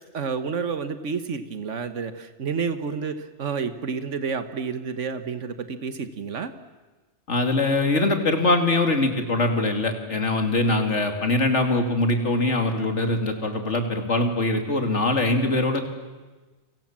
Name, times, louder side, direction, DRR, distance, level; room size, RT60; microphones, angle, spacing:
voice 1, 0.1-6.5, right 5 dB, 90° right, 10 dB, 1.6 m, -30 dB
voice 2, 7.3-15.8, left 2 dB, 75° left, 5 dB, 3.1 m, -22 dB
30.0 x 25.5 x 7.4 m, 1.3 s
omnidirectional pair, 1.2 m